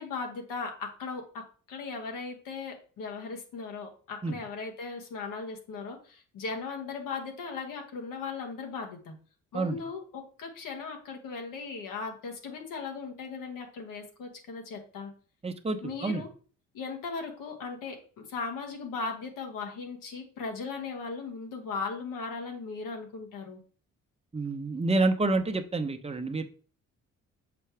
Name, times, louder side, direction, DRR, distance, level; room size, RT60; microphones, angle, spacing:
voice 1, 0.0-9.1 9.5-15.1 15.8-16.3 16.7-23.6, left 4 dB, 75° left, 3 dB, 1.7 m, -38 dB
voice 2, 15.4-16.2 24.3-26.4, right 2 dB, 20° right, 6 dB, 1.0 m, -28 dB
6.9 x 4.5 x 3.4 m, 0.40 s
supercardioid pair, 55°, 33 cm